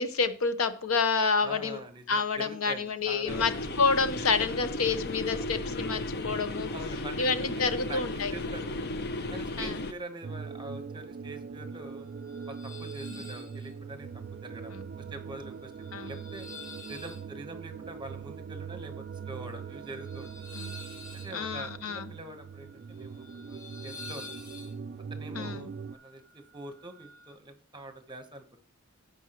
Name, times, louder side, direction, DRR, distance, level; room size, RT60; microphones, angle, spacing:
voice 1, 0.0-1.8 2.1-3.5 3.8-6.7 7.2-8.3 9.6-9.7 13.1-13.2 15.9-16.1 20.5-20.7 21.3-22.0 25.3-25.7, left 4 dB, 85° left, 10 dB, 0.9 m, -28 dB
voice 2, 1.4-3.7 6.7-8.0 8.3-8.8 9.3-12.1 12.5-14.7 15.1-15.7 16.0-16.5 16.9-20.5 21.2-24.3 25.1-28.6, right 2 dB, 20° right, 7 dB, 1.2 m, -44 dB
sound 1, 3.3-9.9, left 1 dB, 50° left, 0.7 m, -35 dB
sound 2, 10.2-25.9, right 6 dB, 45° right, 0.3 m, -41 dB
sound 3, 11.2-27.3, left 3 dB, 20° left, 2.4 m, -51 dB
15.0 x 5.3 x 3.0 m, 0.39 s
head